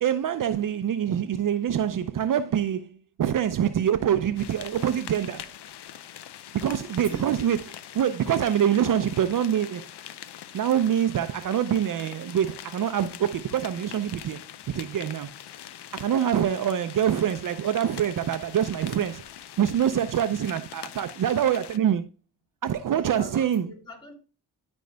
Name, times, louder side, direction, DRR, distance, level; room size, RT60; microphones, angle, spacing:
voice 1, 0.0-5.5 6.5-9.9 10.5-15.3 15.9-19.2 19.6-22.1 22.6-23.7, right 9 dB, 55° right, 0.5 m, -25 dB
sound 1, 4.4-21.8, left 11 dB, 90° left, 0.6 m, -43 dB
voice 2, 6.9-7.3 23.0-24.1, left 1 dB, 10° left, 3.2 m, -44 dB
14.5 x 5.3 x 2.2 m
cardioid pair, 95°, 39 cm